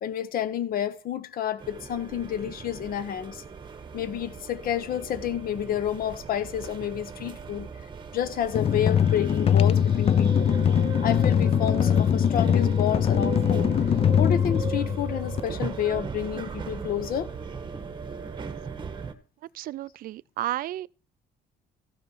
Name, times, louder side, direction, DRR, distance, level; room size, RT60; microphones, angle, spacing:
voice 1, 0.0-3.4 3.9-7.7 8.1-10.5 11.0-13.7 14.2-17.3, left 10 dB, 60° left, 1.0 m, -30 dB
sound 1, 1.6-19.1, right 6 dB, 30° right, 1.3 m, -38 dB
sound 2, 8.5-15.4, left 8 dB, 35° left, 0.5 m, -22 dB
voice 2, 19.5-20.9, right 14 dB, 60° right, 0.4 m, -32 dB
15.0 x 5.4 x 6.0 m
cardioid pair, 110°, 17 cm